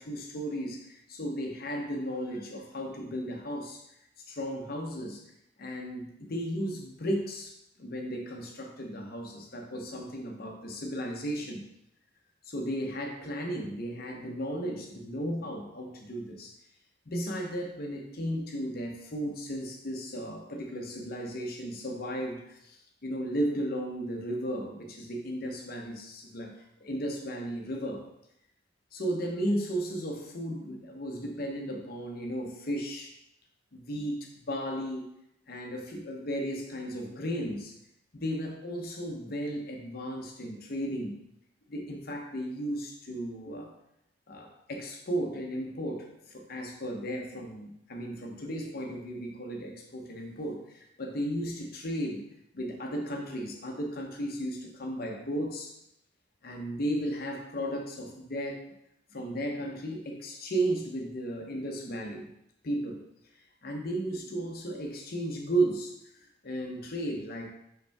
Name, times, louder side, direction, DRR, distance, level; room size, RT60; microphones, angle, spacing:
voice 1, 0.0-3.8 4.3-5.2 5.6-11.6 12.4-16.5 17.1-28.1 28.9-33.1 33.7-35.0 35.5-37.8 38.1-41.2 41.7-43.7 44.3-52.2 52.5-55.7 56.4-58.7 59.1-62.3 62.6-63.0 63.3-67.5, right 1 dB, 55° left, 2 dB, 0.9 m, -35 dB
5.8 x 5.2 x 3.5 m, 0.78 s
head